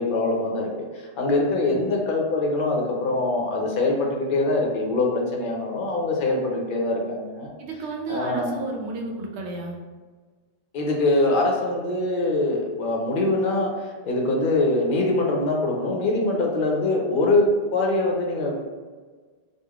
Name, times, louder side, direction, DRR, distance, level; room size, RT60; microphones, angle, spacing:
voice 1, 0.0-7.5 8.1-8.6 10.7-18.6, left 2 dB, 55° left, 0 dB, 0.7 m, -23 dB
voice 2, 7.6-9.8, right 3 dB, 80° right, 1 dB, 0.8 m, -32 dB
3.2 x 2.3 x 2.3 m, 1.4 s
omnidirectional pair, 1.1 m